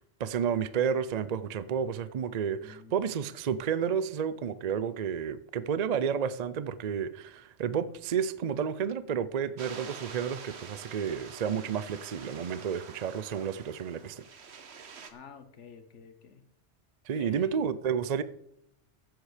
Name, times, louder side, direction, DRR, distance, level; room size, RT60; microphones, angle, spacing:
voice 1, 0.0-14.2 17.1-18.2, right 7 dB, 50° right, 0.5 m, -31 dB
voice 2, 2.6-3.1 15.1-16.4 17.1-17.7, left 6 dB, 80° left, 1.4 m, -49 dB
sound 1, 9.6-15.1, right 6 dB, 65° right, 1.3 m, -47 dB
14.5 x 8.2 x 5.0 m
omnidirectional pair, 1.2 m